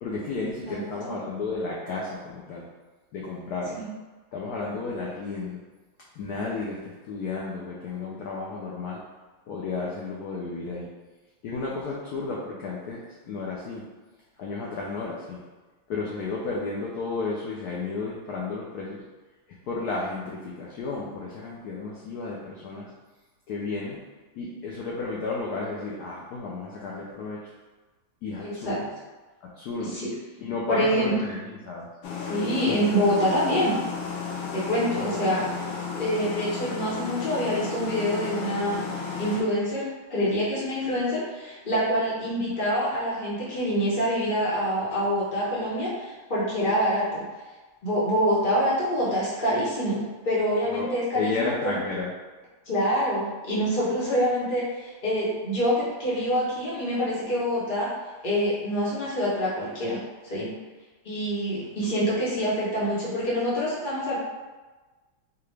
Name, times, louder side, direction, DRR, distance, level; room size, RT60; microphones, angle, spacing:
voice 1, 0.0-2.7 3.1-3.8 4.3-5.6 6.2-9.0 9.5-10.9 11.4-13.0 13.3-13.8 14.4-15.4 15.9-19.0 19.7-22.9 23.5-24.0 24.3-27.5 28.2-28.9 29.4-30.0 30.4-31.9 50.7-52.1, left 3 dB, 70° left, -4 dB, 1.0 m, -32 dB
voice 2, 28.4-28.8 29.8-30.1 30.7-31.1 32.3-33.8 34.5-35.5 36.0-38.9 39.2-47.2 47.8-51.7 52.7-57.9 58.2-60.0 60.2-60.5 61.0-64.2, equal, 30° left, -7 dB, 1.0 m, -26 dB
sound 1, 32.0-39.4, left 5 dB, 85° left, 1.4 m, -33 dB
4.7 x 2.4 x 3.2 m, 1.3 s
omnidirectional pair, 2.1 m